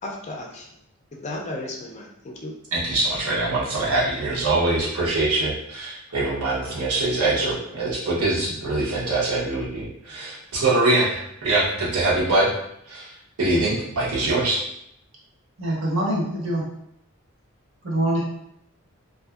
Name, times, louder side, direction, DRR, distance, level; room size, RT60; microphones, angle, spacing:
voice 1, 0.0-0.7 1.1-2.5, left 1 dB, 30° left, 0 dB, 0.3 m, -34 dB
voice 2, 2.7-12.5 12.9-13.1 13.4-14.6, right 2 dB, 90° right, -6 dB, 0.9 m, -23 dB
voice 3, 15.6-16.7 17.8-18.2, right 1 dB, 60° right, -4 dB, 0.8 m, -24 dB
2.5 x 2.5 x 2.3 m, 0.76 s
head